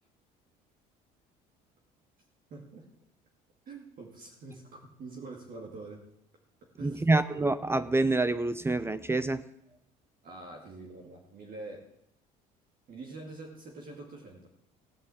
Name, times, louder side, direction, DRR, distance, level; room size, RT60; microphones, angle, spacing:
voice 1, 2.5-2.8 3.7-6.0 6.8-7.0 10.2-11.9 12.9-14.5, right 3 dB, 50° right, 0 dB, 2.5 m, -45 dB
voice 2, 6.8-9.4, right 2 dB, 15° right, 14 dB, 0.6 m, -27 dB
16.5 x 5.5 x 8.4 m, 0.78 s
supercardioid pair, 95°, 19 cm